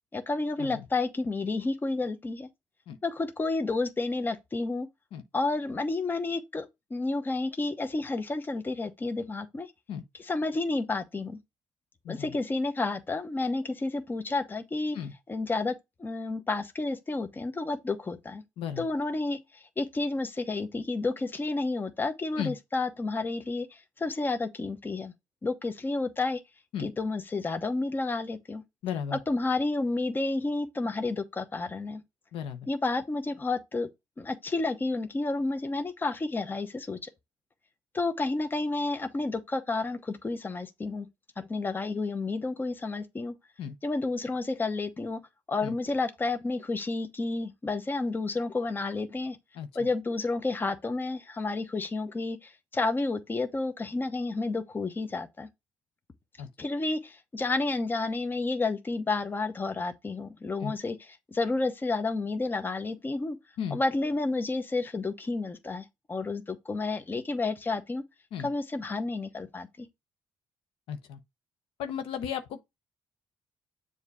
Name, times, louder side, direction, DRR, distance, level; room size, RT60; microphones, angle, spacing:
voice 1, 0.1-2.5 3.0-4.9 5.3-9.7 10.2-11.4 12.1-15.0 15.3-15.7 16.0-18.4 18.8-25.1 25.4-26.4 26.8-28.6 29.1-32.0 32.7-33.9 34.2-37.1 37.9-41.1 41.4-43.3 43.8-45.2 45.5-49.4 49.7-55.5 56.6-61.0 61.3-63.4 63.7-68.0 68.4-69.9, left 3 dB, 20° left, 0.8 m, -30 dB
voice 2, 28.8-29.2 32.3-32.7 43.6-43.7 45.6-45.7 49.5-49.7 56.4-56.5 60.6-60.7 63.6-63.8 68.3-68.5 70.9-71.2 71.8-72.6, left 8 dB, 80° left, 0.9 m, -35 dB
7.2 x 2.7 x 4.8 m
cardioid pair, 110°, 9 cm